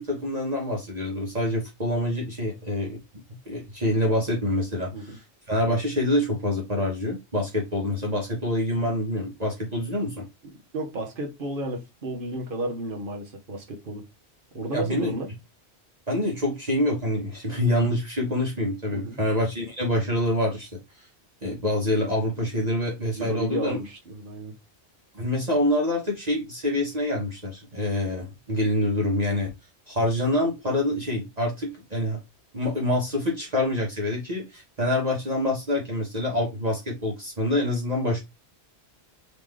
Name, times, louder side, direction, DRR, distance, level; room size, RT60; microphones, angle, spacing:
voice 1, 0.0-3.0 3.5-10.3 14.7-15.1 16.1-20.7 21.0-21.1 21.4-23.8 25.1-29.5 29.9-32.2 32.5-38.2, left 1 dB, 40° right, 1.3 m, -26 dB
voice 2, 4.8-5.2 10.7-14.0 14.5-15.3 18.9-19.2 23.0-24.5, right 2 dB, 55° right, 1.3 m, -33 dB
3.8 x 3.2 x 3.2 m
omnidirectional pair, 1.1 m